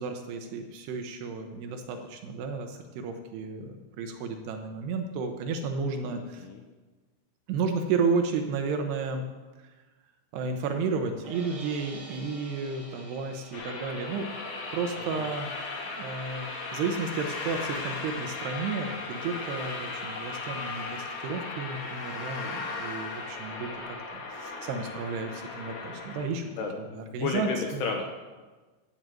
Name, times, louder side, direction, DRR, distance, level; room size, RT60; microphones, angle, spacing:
voice 1, 0.0-6.5 7.5-9.2 10.3-14.3 14.7-15.5 16.0-26.5 26.9-27.9, right 4 dB, 80° right, 5 dB, 2.3 m, -32 dB
voice 2, 6.1-6.6 15.0-15.3 26.4-28.0, left 5 dB, 75° left, 2 dB, 2.5 m, -33 dB
sound 1, 11.2-17.4, right 1 dB, 50° right, 0.9 m, -49 dB
sound 2, 13.5-26.3, left 3 dB, 55° left, 2.4 m, -37 dB
15.0 x 6.2 x 7.6 m, 1.3 s
omnidirectional pair, 5.9 m